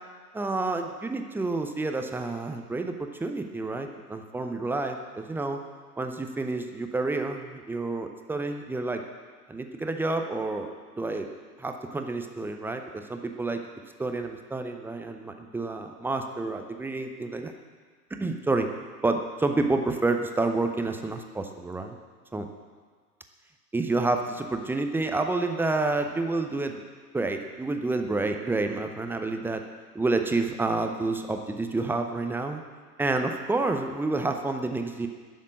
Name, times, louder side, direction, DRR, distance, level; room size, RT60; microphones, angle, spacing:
voice 1, 0.3-2.9 3.2-5.6 6.0-9.0 9.5-11.3 11.6-13.6 14.0-17.5 18.2-18.7 19.0-22.0 22.3-22.5 23.7-26.8 27.1-29.6 29.9-32.6 33.0-35.1, right 3 dB, 5° right, 5 dB, 0.6 m, -29 dB
11.0 x 7.4 x 8.2 m, 1.5 s
figure-of-eight pair, 95°, 47 cm